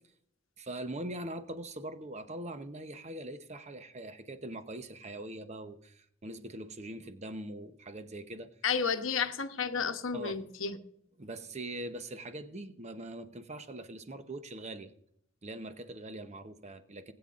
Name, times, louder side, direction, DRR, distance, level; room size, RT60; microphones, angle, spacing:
voice 1, 0.6-8.5 10.1-10.4 11.2-14.9 15.4-17.1, right 1 dB, 35° right, 9 dB, 0.9 m, -42 dB
voice 2, 8.6-10.8, left 6 dB, 80° left, 8 dB, 0.9 m, -31 dB
19.5 x 8.8 x 2.5 m, 0.70 s
head